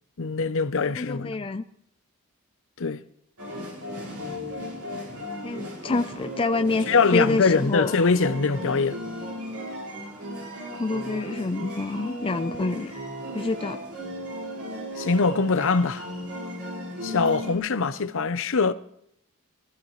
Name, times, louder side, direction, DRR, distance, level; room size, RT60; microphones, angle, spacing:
voice 1, 0.2-1.4 2.8-3.0 6.9-9.0 15.0-16.0 17.0-18.7, left 4 dB, 60° left, 0.7 m, -23 dB
voice 2, 1.0-1.6 5.4-7.9 10.7-12.9 13.3-13.8 17.1-17.2, left 3 dB, 25° left, 0.4 m, -27 dB
sound 1, 3.4-17.5, equal, 85° right, 4.8 m, -36 dB
23.5 x 14.5 x 3.2 m
head